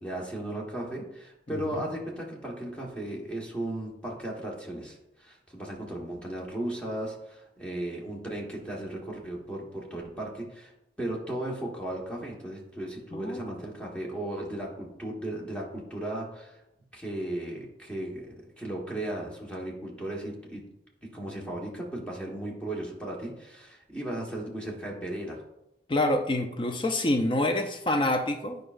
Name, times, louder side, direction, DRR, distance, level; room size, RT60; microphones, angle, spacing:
voice 1, 0.0-10.7 11.0-16.6 16.9-20.6 21.0-25.4, right 1 dB, 5° left, -3 dB, 1.2 m, -36 dB
voice 2, 1.5-1.9 13.1-13.4 25.9-28.6, left 1 dB, 25° left, 5 dB, 0.4 m, -27 dB
9.6 x 5.3 x 2.5 m, 0.88 s
head